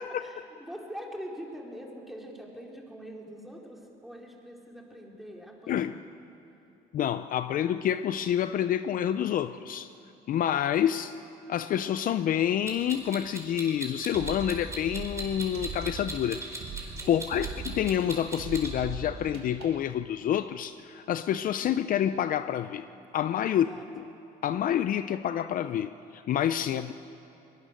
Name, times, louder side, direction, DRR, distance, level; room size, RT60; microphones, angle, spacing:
voice 1, 0.0-6.2 17.0-17.5 23.5-23.9, equal, ahead, -1 dB, 3.8 m, -44 dB
voice 2, 6.9-9.9 10.3-11.1 11.5-16.4 17.1-22.9 23.1-23.7 24.4-26.9, left 10 dB, 55° left, 12 dB, 0.6 m, -28 dB
Clock, 12.7-18.7, right 2 dB, 15° right, 4.1 m, -38 dB
sound 1, 14.1-19.8, right 5 dB, 70° right, 2.3 m, -40 dB
22.0 x 20.5 x 6.5 m, 2.8 s
cardioid pair, 110°, 17 cm